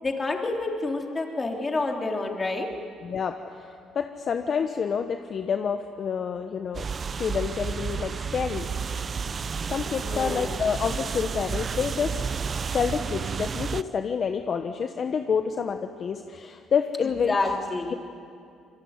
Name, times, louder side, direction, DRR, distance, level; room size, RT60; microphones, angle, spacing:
voice 1, 0.0-2.7 10.0-10.6 17.3-18.0, left 3 dB, 25° left, 2 dB, 3.5 m, -28 dB
voice 2, 3.0-6.8 7.2-9.0 9.7-12.2 12.7-17.4, left 6 dB, 45° left, 6 dB, 1.2 m, -28 dB
sound 1, 6.7-13.8, right 6 dB, 35° right, 0.6 m, -31 dB
26.5 x 22.0 x 9.7 m, 2.5 s
cardioid pair, 105°, 0 cm